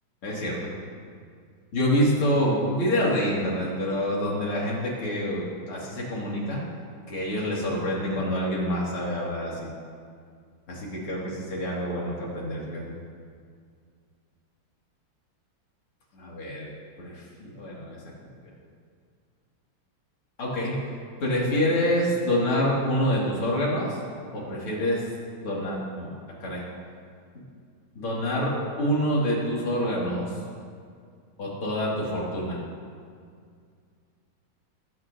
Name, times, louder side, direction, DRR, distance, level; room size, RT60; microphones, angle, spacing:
voice 1, 0.2-0.7 1.7-6.6 7.1-9.7 10.7-13.0 16.1-16.7 17.0-18.0 20.4-20.9 21.2-24.0 24.3-25.1 25.4-26.1 26.4-26.6 27.3-27.4 27.9-30.4 31.4-32.6, equal, 85° left, -5 dB, 3.3 m, -27 dB
19.0 x 8.9 x 2.8 m, 2.2 s
omnidirectional pair, 2.3 m